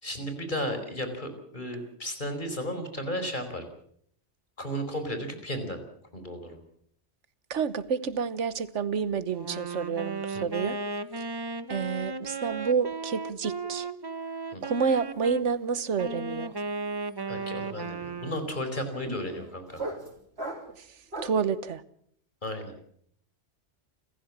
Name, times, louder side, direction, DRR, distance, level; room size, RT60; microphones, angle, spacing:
voice 1, 0.0-3.7 4.6-5.8 6.1-6.6 10.3-10.4 14.5-14.6 17.3-19.9 22.4-22.7, equal, 40° left, 4.9 m, -34 dB
voice 2, 7.5-10.8 11.7-13.9 14.6-16.5 19.1-19.2 20.8-20.9 21.2-21.8, right 6 dB, 80° right, 1.4 m, -29 dB
Wind instrument woodwind instrument, 9.3-15.5 16.0-18.6, right 3 dB, 20° right, 1.0 m, -35 dB
sound 1, 14.7-15.0 15.3-21.5, right 2 dB, 60° right, 4.4 m, -42 dB
29.0 x 15.0 x 7.3 m
omnidirectional pair, 1.2 m